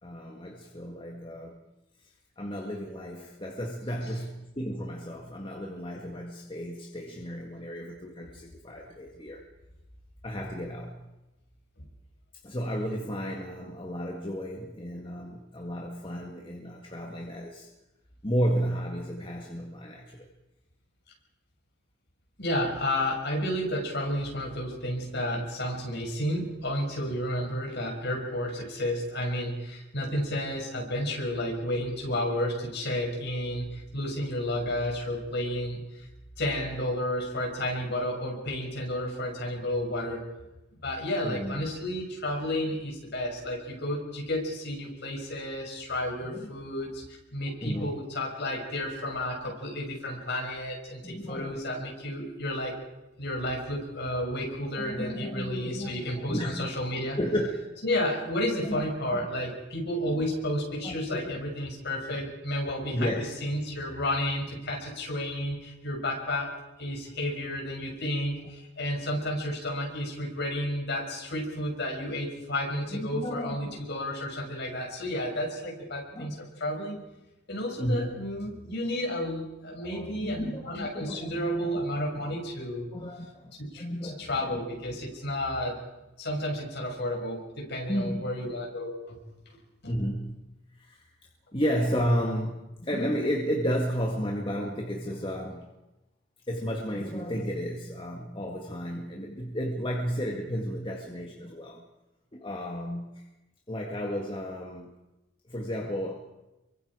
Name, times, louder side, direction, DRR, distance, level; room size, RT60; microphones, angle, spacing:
voice 1, 0.0-1.6 2.4-9.4 10.2-11.1 12.4-17.7 18.2-20.3 41.2-41.6 46.2-46.5 47.6-47.9 51.0-51.6 54.8-56.7 57.2-57.8 58.5-59.5 60.0-60.3 60.8-61.4 62.1-62.3 62.9-63.3 72.9-73.8 76.1-76.4 77.8-78.2 79.8-81.7 82.9-84.6 87.9-88.3 89.9-90.3 90.8-91.1 91.5-95.7 96.5-101.8 102.3-103.3 103.7-104.9 105.5-106.2, equal, 25° left, 0 dB, 2.0 m, -33 dB
voice 2, 22.4-36.0 36.4-40.2 40.8-52.8 53.2-57.2 57.8-63.1 63.4-66.5 66.8-77.0 77.5-82.9 83.6-85.8 86.2-89.2 89.8-89.9, left 1 dB, 55° left, 0 dB, 6.6 m, -32 dB
28.5 x 24.0 x 5.0 m, 1.0 s
head